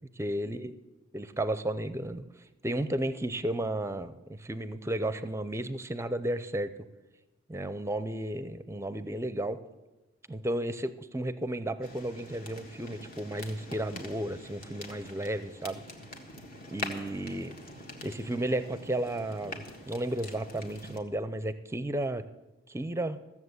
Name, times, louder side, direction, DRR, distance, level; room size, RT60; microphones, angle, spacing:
voice 1, 0.2-0.7 1.1-2.2 2.6-6.7 7.5-9.6 10.3-15.8 16.7-17.6 18.0-22.2 22.7-23.2, right 1 dB, 15° right, 13 dB, 0.5 m, -33 dB
sound 1, 11.8-21.0, left 2 dB, 45° left, 1.6 m, -44 dB
15.0 x 7.3 x 8.1 m, 1.1 s
head